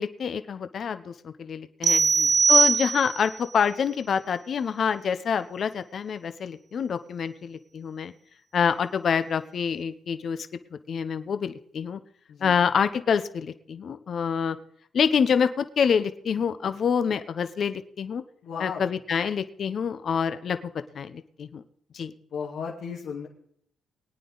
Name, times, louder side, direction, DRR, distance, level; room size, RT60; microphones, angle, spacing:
voice 1, 0.0-2.0 2.5-8.1 8.5-10.5 10.9-12.0 12.4-14.6 14.9-18.2 18.6-20.6 20.9-21.6 21.9-22.1, left 7 dB, 55° left, 11 dB, 0.9 m, -26 dB
sound 1, 1.8-3.4, right 5 dB, 40° right, 0.6 m, -20 dB
voice 2, 1.9-2.4 12.3-12.6 18.4-18.9 22.3-23.3, left 6 dB, 75° left, -2 dB, 2.2 m, -36 dB
21.5 x 9.3 x 4.0 m, 0.69 s
cardioid pair, 90°, 0 cm